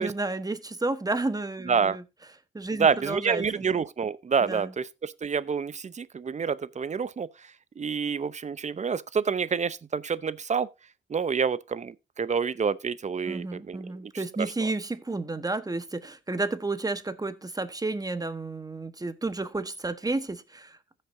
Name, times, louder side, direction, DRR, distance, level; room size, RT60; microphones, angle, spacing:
voice 1, 0.0-2.0 2.5-3.6 4.4-4.7 13.3-20.8, right 2 dB, 20° right, 1.2 m, -31 dB
voice 2, 1.7-2.0 2.8-7.3 7.8-10.7 11.1-13.8 14.4-14.5, right 6 dB, 35° right, 0.7 m, -28 dB
15.5 x 6.7 x 2.7 m
cardioid pair, 65°, 20 cm